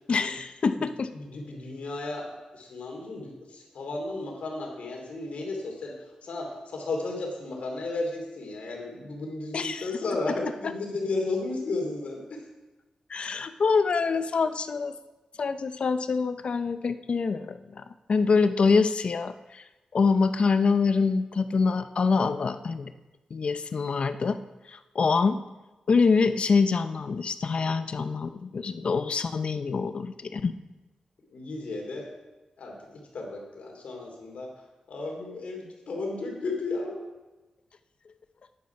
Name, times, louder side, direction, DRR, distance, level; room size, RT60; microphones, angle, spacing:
voice 1, 0.1-1.1 9.5-10.0 10.6-10.7 13.1-14.9 15.4-17.8 18.1-19.6 19.9-22.9 23.3-24.4 24.7-25.4 25.9-30.5, left 4 dB, 55° left, 11 dB, 0.7 m, -25 dB
voice 2, 1.2-2.3 2.5-5.9 6.2-6.5 6.7-12.2 31.3-32.1 32.6-32.7 33.1-34.5 34.9-37.0, left 3 dB, 80° left, 0 dB, 3.0 m, -33 dB
9.5 x 9.5 x 5.9 m, 1.1 s
wide cardioid pair, 105°, 2 cm